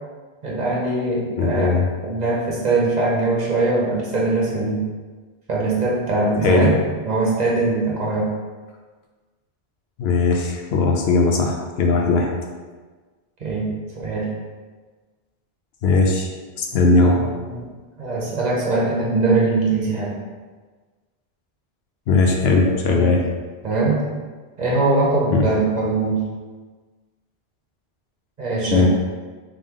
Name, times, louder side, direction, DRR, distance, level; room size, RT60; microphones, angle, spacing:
voice 1, 0.4-1.7 2.0-4.9 5.5-6.7 7.0-8.4 13.4-14.4 17.0-17.6 18.0-20.2 22.9-23.2 23.6-24.0 24.6-26.3 28.4-28.9, right 3 dB, 45° right, -4 dB, 0.8 m, -21 dB
voice 2, 1.4-1.9 6.4-6.7 10.0-12.3 15.8-16.3 16.6-17.2 22.1-23.2 25.3-25.4 28.7-28.9, left 3 dB, 75° left, 1 dB, 0.8 m, -18 dB
3.5 x 3.1 x 3.6 m, 1.4 s
omnidirectional pair, 1.1 m